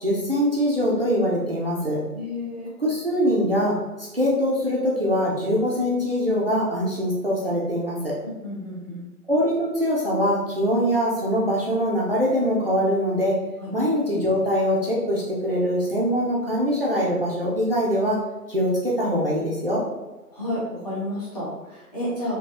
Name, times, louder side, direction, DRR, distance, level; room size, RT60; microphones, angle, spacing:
voice 1, 0.0-2.0 2.8-8.1 9.3-13.4 13.7-18.2 18.5-19.8, equal, 40° right, -5 dB, 0.5 m, -23 dB
voice 2, 2.1-2.7 8.2-9.0 13.6-13.7 20.3-22.4, left 1 dB, 25° left, -8 dB, 0.8 m, -31 dB
3.3 x 2.3 x 2.6 m, 1.1 s
figure-of-eight pair, 145°, 46 cm